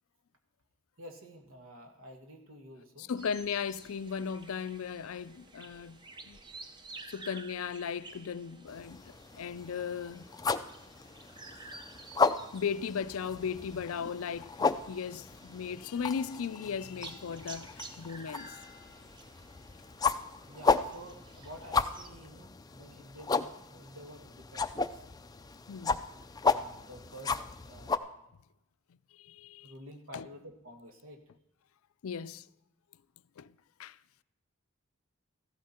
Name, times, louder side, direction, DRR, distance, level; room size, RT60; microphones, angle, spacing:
voice 1, 1.0-3.1 20.5-25.0 26.3-27.4 27.6-28.3 29.6-31.2, equal, 70° right, 1.8 m, -50 dB
voice 2, 3.0-6.4 7.1-10.3 12.5-18.6 25.7-26.0 29.1-29.7 30.1-30.3 32.0-32.5 33.4-34.0, left 6 dB, 80° left, 0.4 m, -37 dB
sound 1, 3.2-22.1, right 3 dB, 20° right, 0.8 m, -52 dB
sound 2, 8.7-28.0, left 4 dB, 20° left, 0.4 m, -34 dB
15.0 x 13.0 x 4.3 m
head